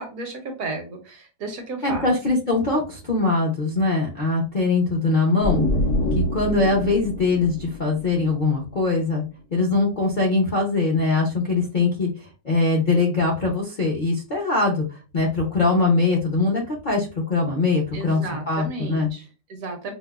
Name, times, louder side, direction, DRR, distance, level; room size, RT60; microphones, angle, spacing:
voice 1, 0.0-2.1 17.9-19.9, right 3 dB, 65° right, 4 dB, 1.0 m, -33 dB
voice 2, 1.8-5.7 6.1-9.2 9.5-12.1 12.4-19.1, left 3 dB, 55° left, -3 dB, 0.5 m, -22 dB
sound 1, 5.4-9.0, left 1 dB, 80° left, 1.3 m, -26 dB
5.1 x 2.0 x 2.3 m, 0.33 s
omnidirectional pair, 1.8 m